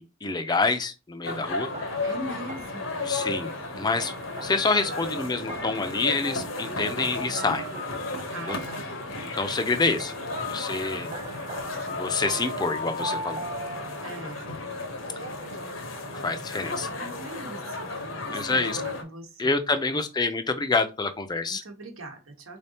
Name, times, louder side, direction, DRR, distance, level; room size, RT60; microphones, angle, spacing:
voice 1, 0.0-1.7 3.0-4.1 4.4-7.7 8.4-8.6 9.3-10.1 10.4-11.1 12.0-13.4 16.1-16.9 18.3-18.8 19.4-21.6, left 3 dB, 20° left, 0.4 m, -27 dB
sound 1, 1.2-19.0, left 2 dB, 70° left, 0.9 m, -34 dB
sound 2, 1.7-2.9 4.0-6.0 7.0-9.0 10.0-14.3, right 1 dB, 35° right, 0.4 m, -39 dB
voice 2, 2.0-3.1 6.8-7.3 8.3-8.9 14.0-14.5 15.0-15.9 16.2-16.3 16.9-19.6 19.9-20.0 21.5-22.6, right 1 dB, 85° right, 1.0 m, -42 dB
3.7 x 3.3 x 2.7 m
head